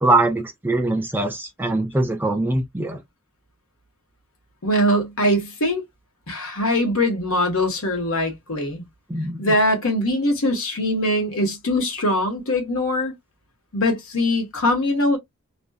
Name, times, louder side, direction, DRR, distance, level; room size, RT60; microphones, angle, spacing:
voice 1, 0.0-3.0 9.1-9.5, right 2 dB, 10° right, 0.3 m, -22 dB
voice 2, 4.6-5.8 6.3-8.8 9.4-13.1 13.7-15.2, left 1 dB, 65° left, 1.1 m, -22 dB
2.5 x 2.2 x 2.2 m
head